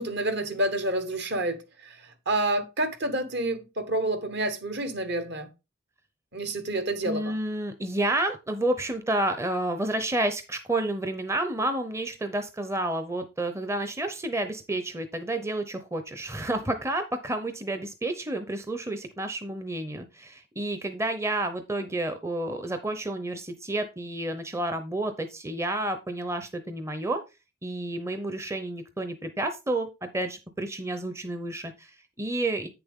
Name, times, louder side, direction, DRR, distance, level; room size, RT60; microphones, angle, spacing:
voice 1, 0.0-2.0 2.3-5.5 6.3-7.3, right 1 dB, 55° right, 1.3 m, -28 dB
voice 2, 7.0-27.2 27.6-32.7, right 1 dB, 15° right, 0.7 m, -30 dB
8.7 x 6.8 x 3.6 m
head